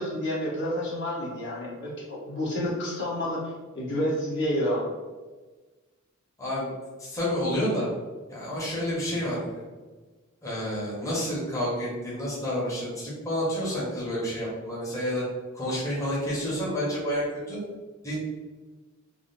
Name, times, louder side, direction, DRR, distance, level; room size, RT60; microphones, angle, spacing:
voice 1, 0.0-3.4 3.7-4.9, equal, 55° left, -6 dB, 1.2 m, -29 dB
voice 2, 6.4-6.7 7.0-7.9 8.3-9.6 10.4-15.2 15.5-17.6 18.0-18.1, equal, 15° left, -8 dB, 1.1 m, -29 dB
3.8 x 2.0 x 4.0 m, 1.3 s
head